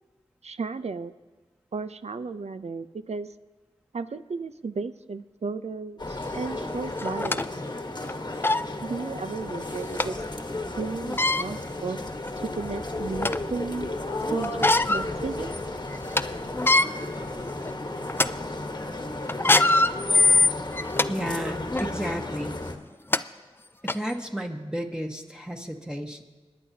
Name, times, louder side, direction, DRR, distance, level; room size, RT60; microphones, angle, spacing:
voice 1, 0.4-1.1 1.7-3.3 3.9-7.5 8.8-10.1 10.8-12.0 12.4-14.0 14.3-15.5, right 4 dB, 75° right, 12 dB, 0.6 m, -34 dB
sound 1, 6.0-22.8, left 2 dB, 40° left, 1.2 m, -34 dB
sound 2, 6.2-6.3 7.0-7.4 8.0-8.1 8.4-8.7 10.0-10.1 11.0-11.4 12.2-12.3 12.8-13.5 14.4-15.1 15.5-15.6 15.9-16.2 16.5-16.9 17.5-17.7 18.1-18.3 19.3-21.1 21.7-21.9 22.7-22.8 23.1-23.2 23.9-24.0, left 2 dB, 20° left, 0.4 m, -22 dB
voice 2, 21.1-22.5 23.8-26.2, equal, 5° right, 2 dB, 1.3 m, -32 dB
27.5 x 10.0 x 2.8 m, 1.3 s
cardioid pair, 40°, 11 cm